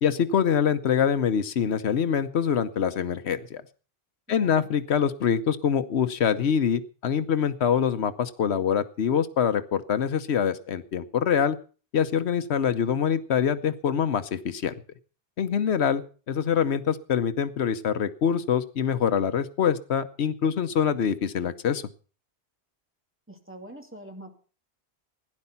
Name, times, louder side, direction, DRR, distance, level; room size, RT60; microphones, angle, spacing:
voice 1, 0.0-3.6 4.3-11.6 11.9-14.7 15.4-16.0 16.3-21.8, left 7 dB, 85° left, 12 dB, 1.2 m, -25 dB
voice 2, 4.3-4.7 23.3-24.3, right 1 dB, 10° right, 2 dB, 2.5 m, -44 dB
16.5 x 11.0 x 5.7 m, 0.39 s
omnidirectional pair, 1.1 m